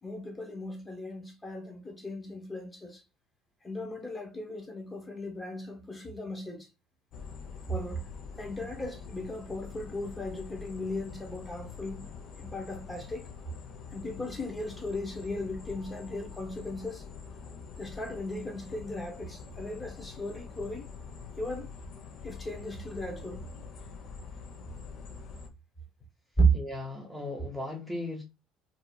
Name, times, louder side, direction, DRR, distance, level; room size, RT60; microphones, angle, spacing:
voice 1, 0.0-3.0 3.6-6.7 7.7-8.1 8.4-12.1 12.4-13.3 13.9-17.0 17.8-20.9 21.4-21.7 22.2-23.5 26.4-26.5, right 1 dB, 20° left, 1.0 m, -35 dB
sound 1, 7.1-25.5, left 5 dB, 55° left, 0.7 m, -45 dB
voice 2, 26.5-28.2, left 2 dB, ahead, 0.8 m, -37 dB
2.8 x 2.4 x 2.2 m
hypercardioid pair, 75°, 0 cm